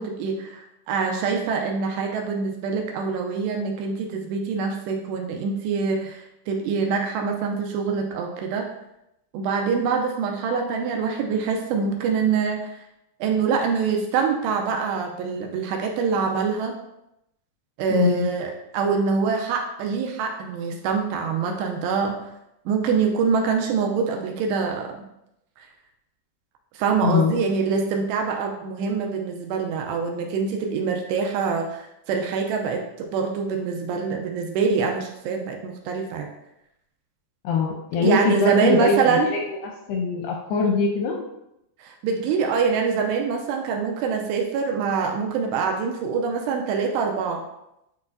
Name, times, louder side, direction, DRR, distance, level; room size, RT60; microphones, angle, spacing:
voice 1, 0.0-8.6 9.3-12.9 13.2-16.7 17.8-22.1 22.7-25.0 25.6-25.7 26.7-36.3 38.0-39.3 41.8-47.5, right 5 dB, 80° right, 2 dB, 2.6 m, -25 dB
voice 2, 17.9-18.3 27.0-27.3 37.4-39.6 39.9-41.2, left 4 dB, 80° left, 0 dB, 2.4 m, -22 dB
9.6 x 4.3 x 2.6 m, 0.84 s
omnidirectional pair, 5.2 m